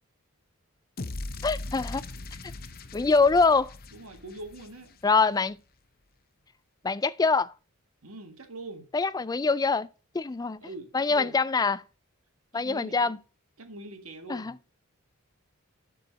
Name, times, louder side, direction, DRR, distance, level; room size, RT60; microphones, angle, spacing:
sound 1, 1.0-5.2, left 2 dB, 45° left, 0.7 m, -39 dB
voice 1, 1.4-2.0 2.9-3.7 5.0-5.6 6.8-7.5 8.9-9.9 10.1-10.6 10.9-11.8 12.5-13.2 14.3-14.5, left 4 dB, 15° left, 0.3 m, -24 dB
voice 2, 3.9-5.0 8.0-8.9 10.6-11.4 12.5-12.9 13.6-14.6, right 2 dB, 75° right, 1.8 m, -42 dB
12.0 x 4.7 x 4.1 m
head